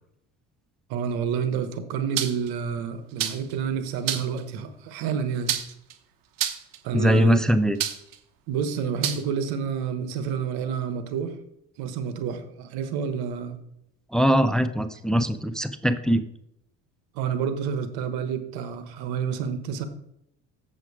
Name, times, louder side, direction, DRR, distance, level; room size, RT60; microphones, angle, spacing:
voice 1, 0.9-5.5 6.8-7.4 8.5-11.3 11.8-13.6 17.1-19.8, right 7 dB, 85° right, 9 dB, 1.2 m, -29 dB
sound 1, 2.2-2.5 3.2-3.5 4.1-4.4 5.5-5.9 6.4-6.8 7.8-8.2 9.0-9.2, right 10 dB, 65° right, 1.1 m, -27 dB
voice 2, 6.9-7.8 14.1-16.2, equal, ahead, 11 dB, 0.6 m, -21 dB
7.7 x 7.3 x 4.8 m, 0.77 s
supercardioid pair, 90°, 36 cm